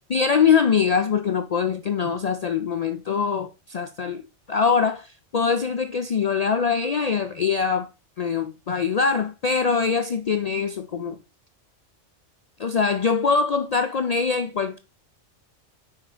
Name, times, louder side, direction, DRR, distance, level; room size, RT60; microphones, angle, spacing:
voice 1, 0.1-4.2 4.5-7.9 8.2-11.2 12.6-14.8, left 6 dB, 85° left, 0.3 m, -23 dB
5.6 x 4.8 x 5.0 m
omnidirectional pair, 1.3 m